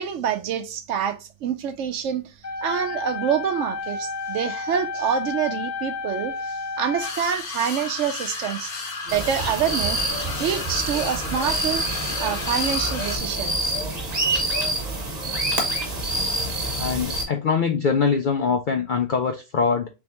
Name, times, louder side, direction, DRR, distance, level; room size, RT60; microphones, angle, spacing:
voice 1, 0.0-2.3 2.6-8.7 9.1-10.0 10.4-11.8 12.2-13.7, right 8 dB, 70° right, 0.9 m, -26 dB
sound 1, 2.4-7.4, left 4 dB, 15° left, 0.6 m, -31 dB
sound 2, 7.0-13.2, left 4 dB, 50° left, 0.9 m, -33 dB
sound 3, 9.1-17.2, right 1 dB, 30° right, 1.1 m, -26 dB
voice 2, 16.8-19.9, left 5 dB, 70° left, 0.4 m, -23 dB
3.5 x 3.3 x 2.9 m
omnidirectional pair, 1.4 m